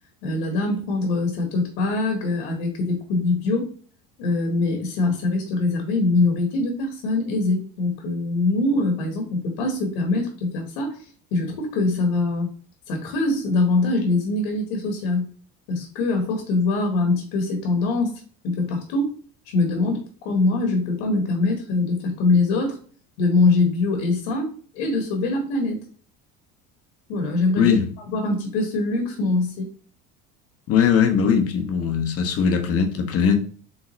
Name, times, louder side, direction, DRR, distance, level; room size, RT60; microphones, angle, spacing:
voice 1, 0.2-3.7 4.2-11.0 11.3-12.5 12.9-15.3 15.7-19.1 19.5-22.8 23.2-25.8 27.1-27.8 28.1-29.7, left 3 dB, 85° left, 1.3 m, -23 dB
voice 2, 27.6-27.9 30.7-33.4, left 7 dB, 45° left, 1.0 m, -20 dB
3.9 x 3.6 x 3.0 m
supercardioid pair, 105°, 32 cm